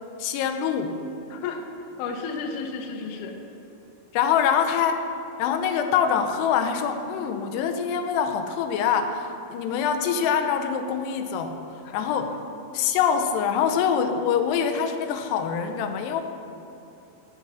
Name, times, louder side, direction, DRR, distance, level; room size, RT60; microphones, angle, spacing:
voice 1, 0.2-1.0 4.1-5.1 5.4-12.4 12.7-16.2, left 7 dB, 90° left, 7 dB, 2.8 m, -24 dB
voice 2, 1.3-3.4 11.8-12.0, left 4 dB, 70° left, 3 dB, 2.0 m, -33 dB
13.5 x 5.4 x 6.2 m, 2.9 s
omnidirectional pair, 4.7 m